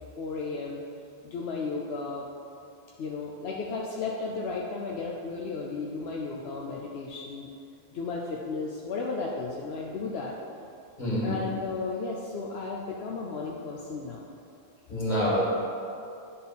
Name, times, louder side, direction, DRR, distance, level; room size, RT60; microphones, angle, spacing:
voice 1, 0.2-0.8 1.2-2.3 3.0-7.5 7.9-10.4 11.2-14.3, left 4 dB, 80° left, -2 dB, 0.9 m, -34 dB
voice 2, 11.0-11.4 14.9-15.4, left 1 dB, 45° left, -7 dB, 1.9 m, -27 dB
10.0 x 3.8 x 4.0 m, 2.5 s
omnidirectional pair, 1.1 m